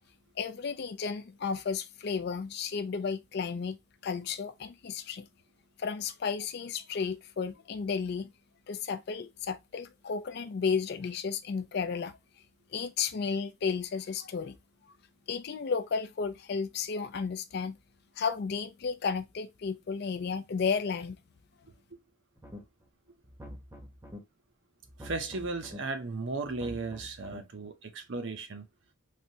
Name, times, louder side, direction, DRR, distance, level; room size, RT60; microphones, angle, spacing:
voice 1, 0.4-3.8 4.0-5.3 5.8-8.3 8.7-12.2 12.7-14.6 15.3-17.8 18.2-21.2, left 5 dB, 50° left, 0.4 m, -33 dB
sound 1, 22.4-22.9 23.2-24.2 24.8-25.8 26.4-27.4, left 1 dB, 15° right, 0.7 m, -46 dB
voice 2, 25.0-28.7, right 3 dB, 60° right, 0.6 m, -36 dB
3.2 x 2.6 x 2.7 m
head